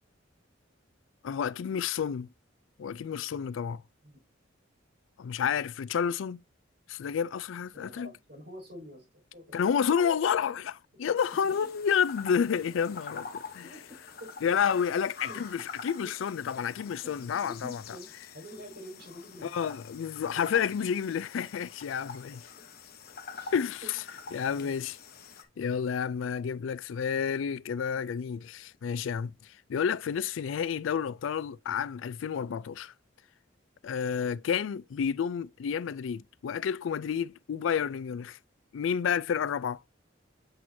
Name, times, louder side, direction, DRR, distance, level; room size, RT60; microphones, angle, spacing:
voice 1, 1.2-2.3 2.8-3.8 5.2-6.4 6.9-8.1 9.5-13.6 14.4-17.8 19.4-22.4 23.5-24.0 24.3-25.0 25.6-32.9 33.8-38.4 38.7-39.8, left 7 dB, 75° left, 0.4 m, -30 dB
voice 2, 7.7-9.8 11.5-11.7 13.6-14.3 15.3-15.5 16.0-16.1 17.0-19.8 20.3-20.5 22.6-22.7 23.3-24.7, left 1 dB, 55° right, 5.5 m, -48 dB
sound 1, 11.2-25.4, left 5 dB, 50° left, 1.1 m, -46 dB
7.9 x 6.0 x 2.6 m
head